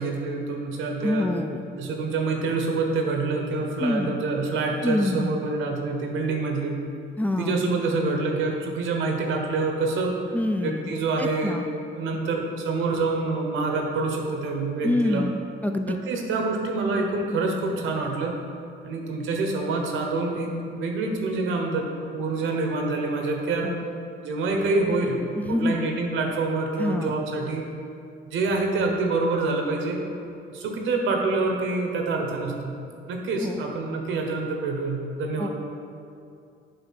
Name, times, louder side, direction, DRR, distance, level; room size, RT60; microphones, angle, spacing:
voice 1, 0.0-1.3 1.7-6.8 7.4-10.2 10.6-11.6 11.9-15.3 15.9-18.4 18.8-23.7 24.2-25.2 25.5-27.7 28.3-30.0 30.5-32.8 33.1-35.5, right 3 dB, 80° right, 2 dB, 1.0 m, -26 dB
voice 2, 1.0-1.6 3.8-4.1 4.8-5.3 7.2-7.7 10.3-10.9 11.2-11.7 14.8-16.0 23.6-23.8 25.4-25.8 26.8-27.2 33.4-33.6 35.4-35.5, left 1 dB, 10° left, 5 dB, 0.4 m, -26 dB
8.0 x 3.4 x 5.7 m, 2.5 s
cardioid pair, 90°, 20 cm